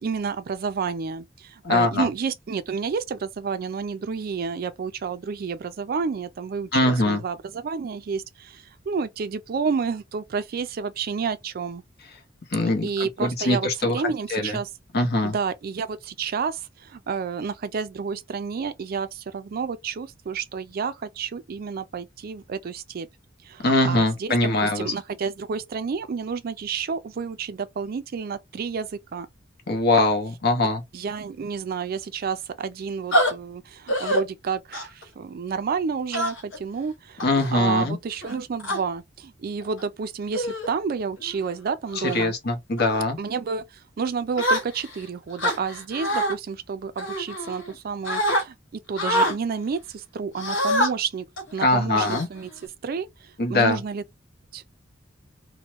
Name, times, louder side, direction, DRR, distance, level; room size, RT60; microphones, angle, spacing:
voice 1, 0.0-11.8 12.8-13.7 13.9-14.7 15.2-23.1 23.5-29.3 30.9-42.3 43.2-43.6 44.0-48.5 48.9-51.3 51.5-52.5 52.8-53.1 53.5-54.0 54.5-54.6, right 5 dB, 50° right, 0.4 m, -30 dB
voice 2, 1.6-2.1 6.7-7.2 12.5-14.0 14.3-14.6 14.9-15.3 23.6-24.9 29.7-30.8 37.2-38.0 41.9-43.2 51.6-52.3 53.4-53.8, left 2 dB, 60° left, 0.9 m, -22 dB
sound 1, 33.1-33.3 33.9-34.2 34.7-35.0 36.1-36.6 37.2-37.5 38.2-38.8 39.6-39.8 40.3-40.7 41.2-41.4 41.9-42.3 42.8-43.0 44.4-45.0 45.4-46.3 47.0-47.8 48.1-48.4 49.0-49.4 50.4-50.9 51.4-51.5 52.0-52.6, equal, 75° left, 1.2 m, -25 dB
3.0 x 2.1 x 3.0 m
head